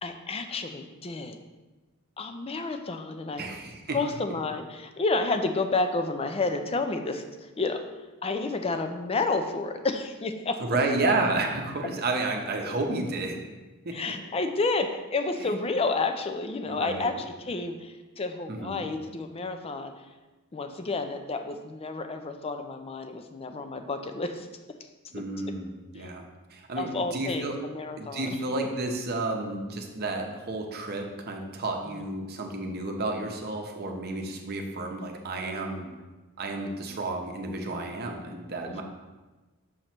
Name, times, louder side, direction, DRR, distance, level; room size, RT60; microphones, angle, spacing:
voice 1, 0.0-1.4 2.2-3.5 3.9-7.8 8.2-10.6 13.9-19.9 20.5-24.5 25.1-25.2 26.0-26.1 26.7-28.4 38.7-38.8, left 3 dB, 25° left, 7 dB, 0.4 m, -30 dB
voice 2, 3.4-4.0 10.6-13.4 13.8-14.0 15.4-15.6 16.6-17.2 18.5-18.8 25.1-25.7 25.9-27.6 28.0-35.9 36.4-38.8, right 2 dB, 45° right, 2 dB, 0.8 m, -31 dB
6.4 x 3.1 x 5.8 m, 1.2 s
head